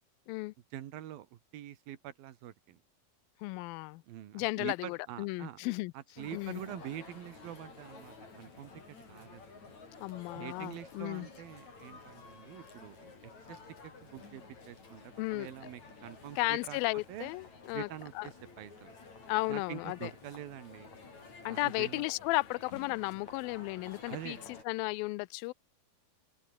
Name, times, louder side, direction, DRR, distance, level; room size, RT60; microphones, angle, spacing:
voice 1, 0.7-2.8 4.1-5.6 5.9-9.5 10.3-16.8 17.1-17.3 17.7-18.9 19.5-20.9 21.5-22.1 24.1-24.4, right 12 dB, 75° right, 3.4 m, -45 dB
voice 2, 3.4-4.0 4.3-5.9 6.3-6.6 10.0-11.3 15.2-15.5 16.4-17.9 18.2-18.3 19.3-20.1 21.4-24.4 24.7-25.5, left 23 dB, 80° left, 2.3 m, -34 dB
sound 1, 6.2-24.6, left 4 dB, 50° left, 7.0 m, -52 dB
open air
omnidirectional pair, 4.3 m